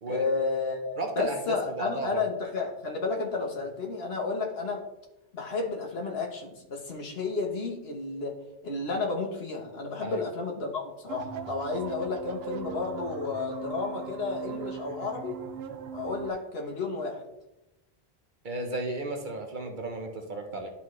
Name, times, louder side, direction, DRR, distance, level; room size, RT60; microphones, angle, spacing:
voice 1, 0.0-4.8 5.3-8.4 8.6-15.3 15.9-17.2, left 4 dB, 70° left, 0 dB, 1.4 m, -32 dB
voice 2, 1.0-2.3 10.0-10.2 18.4-20.7, right 2 dB, 50° right, 4 dB, 1.0 m, -34 dB
sound 1, 11.1-16.3, right 7 dB, 75° right, 0.8 m, -39 dB
11.0 x 4.2 x 3.2 m, 0.94 s
omnidirectional pair, 1.1 m